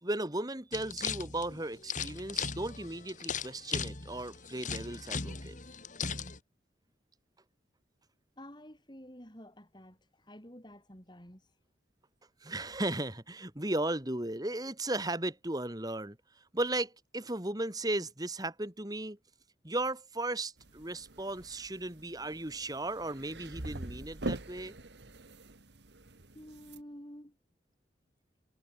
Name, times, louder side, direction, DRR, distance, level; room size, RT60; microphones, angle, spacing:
voice 1, 0.0-5.6 12.4-16.2 16.5-19.2 19.6-24.7, right 2 dB, 20° right, 2.3 m, -36 dB
sound 1, 0.7-6.4, left 6 dB, 45° left, 2.5 m, -38 dB
voice 2, 8.4-11.5 26.3-27.4, equal, 25° left, 8.0 m, -50 dB
sound 2, 20.6-26.8, right 1 dB, 70° right, 1.9 m, -44 dB
head